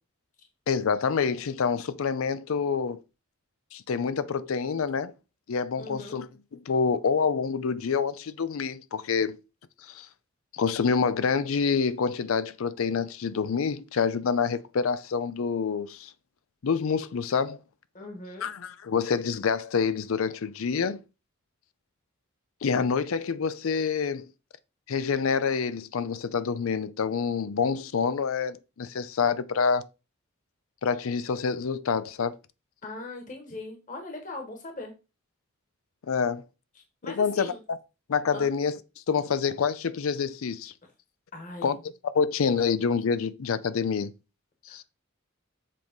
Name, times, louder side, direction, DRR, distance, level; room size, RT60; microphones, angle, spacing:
voice 1, 0.7-3.0 3.7-5.1 5.5-9.4 9.8-10.1 10.5-16.1 16.6-17.6 18.4-21.0 22.6-24.3 24.9-29.9 30.8-32.4 36.1-36.4 37.1-37.8 38.1-38.8 39.1-40.7 41.6-41.8 42.1-44.1 44.7-44.8, left 5 dB, 80° left, 0.5 m, -27 dB
voice 2, 5.8-6.2 17.9-18.5 32.8-34.9 37.0-37.6 38.3-38.5 40.8-40.9 41.3-41.7 44.7-44.8, left 2 dB, 40° left, 1.3 m, -40 dB
7.5 x 3.1 x 5.2 m
head